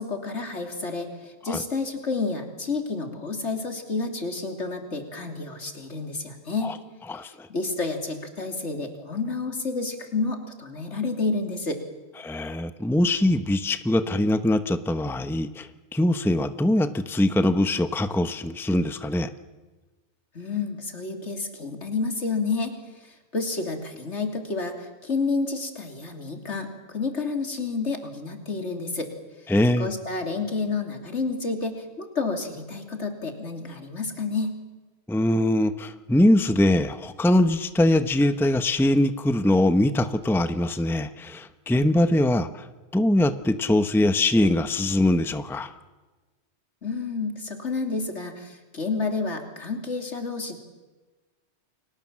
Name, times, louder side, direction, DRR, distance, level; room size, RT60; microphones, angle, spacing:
voice 1, 0.0-6.8 7.5-11.8 20.3-29.1 29.8-34.5 46.8-50.6, left 3 dB, 75° left, 5 dB, 3.4 m, -30 dB
voice 2, 7.1-7.5 12.2-19.3 29.5-29.9 35.1-42.7 42.9-45.7, left 1 dB, ahead, 11 dB, 0.9 m, -22 dB
30.0 x 23.0 x 7.5 m, 1.2 s
omnidirectional pair, 1.2 m